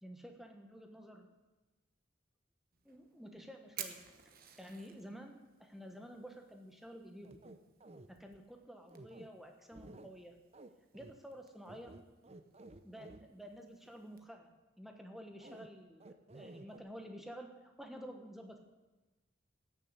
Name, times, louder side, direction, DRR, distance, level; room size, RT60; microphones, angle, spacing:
voice 1, 0.0-1.3 2.8-4.1 4.6-7.5 8.1-10.4 10.9-12.0 12.8-18.6, equal, ahead, 3 dB, 1.3 m, -51 dB
Fire, 2.7-14.2, right 9 dB, 50° right, 1.2 m, -55 dB
sound 1, 7.2-8.1 8.9-9.3 9.7-10.1 10.5-10.7 10.9-11.1 11.7-13.2 15.4-15.7 16.0-16.8, right 2 dB, 35° right, 0.7 m, -53 dB
14.5 x 7.3 x 8.2 m, 1.1 s
head